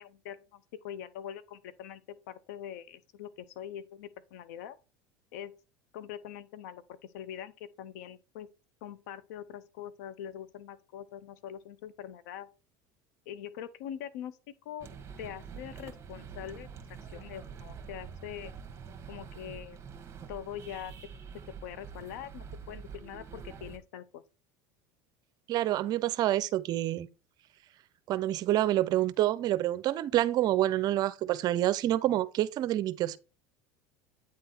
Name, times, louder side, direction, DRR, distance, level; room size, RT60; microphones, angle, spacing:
voice 1, 0.0-4.8 5.3-5.5 5.9-8.5 8.8-12.5 13.3-14.9 15.2-16.7 17.1-18.5 19.1-19.8 20.3-20.9 21.6-24.2, left 10 dB, 80° left, 0.7 m, -43 dB
sound 1, 14.8-23.8, right 6 dB, 30° right, 1.4 m, -46 dB
voice 2, 25.5-27.1 28.1-33.2, right 14 dB, 50° right, 0.6 m, -27 dB
8.7 x 3.7 x 4.3 m
supercardioid pair, 100°, 9 cm